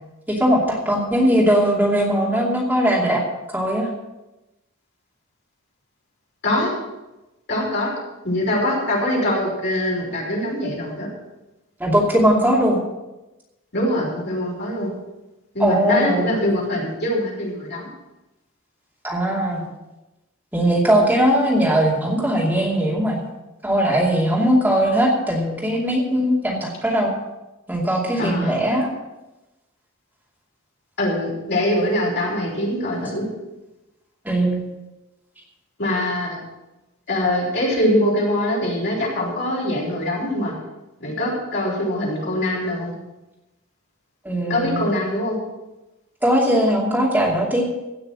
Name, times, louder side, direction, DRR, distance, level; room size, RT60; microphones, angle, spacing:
voice 1, 0.3-3.2 3.5-3.9 11.8-12.8 15.6-16.3 19.0-19.6 20.5-23.2 23.6-27.1 27.7-28.9 34.2-34.6 44.2-44.8 46.2-47.6, equal, 10° right, -4 dB, 2.7 m, -19 dB
voice 2, 7.5-7.9 8.2-11.1 13.7-14.9 15.5-17.9 28.2-28.6 31.0-33.3 35.8-36.4 37.1-40.5 41.0-42.9 44.5-45.4, left 1 dB, 55° left, -4 dB, 5.6 m, -23 dB
16.5 x 6.4 x 7.5 m, 1.0 s
head